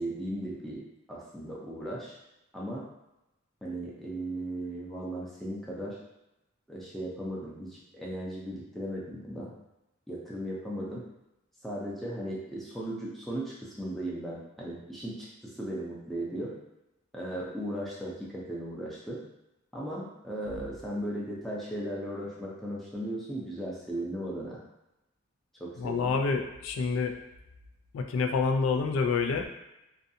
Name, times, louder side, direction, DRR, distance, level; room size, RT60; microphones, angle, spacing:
voice 1, 0.0-2.2 2.5-2.8 3.6-6.0 6.7-9.5 10.1-11.0 11.6-16.5 17.1-19.2 19.7-24.6 25.6-26.1, right 1 dB, ahead, -6 dB, 0.5 m, -37 dB
voice 2, 25.8-27.1 27.9-29.5, left 4 dB, 80° left, 4 dB, 0.3 m, -27 dB
2.5 x 2.3 x 2.6 m, 0.91 s
head